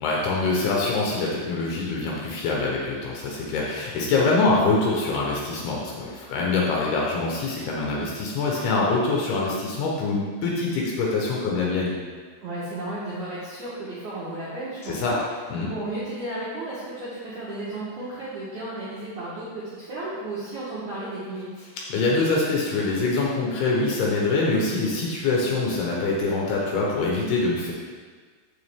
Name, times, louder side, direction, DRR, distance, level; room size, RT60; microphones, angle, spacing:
voice 1, 0.0-11.9 14.8-15.1 15.5-15.7 21.9-27.7, left 3 dB, 70° left, -3 dB, 2.8 m, -24 dB
voice 2, 12.4-15.2 15.7-21.7, right 2 dB, 70° right, -10 dB, 1.9 m, -34 dB
7.3 x 7.0 x 3.6 m, 1.5 s
omnidirectional pair, 5.3 m